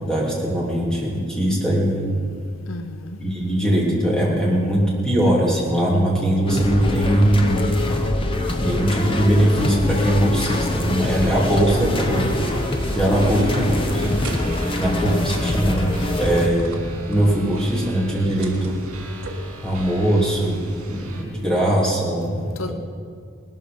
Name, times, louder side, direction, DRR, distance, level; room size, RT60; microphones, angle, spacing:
voice 1, 0.0-2.1 3.2-7.8 8.6-12.3 12.9-14.2 14.7-15.9 16.2-18.9 19.6-22.7, right 1 dB, 5° left, 3.1 m, -21 dB
voice 2, 2.7-3.2 13.1-13.4 13.7-14.3 15.0-15.2 22.6-22.7, left 2 dB, 70° left, 0.7 m, -34 dB
sound 1, 6.5-16.5, left 1 dB, 25° left, 1.0 m, -24 dB
sound 2, 11.0-21.2, right 2 dB, 85° right, 3.0 m, -39 dB
sound 3, 14.2-20.0, right 2 dB, 65° right, 1.6 m, -42 dB
19.0 x 13.0 x 5.3 m
head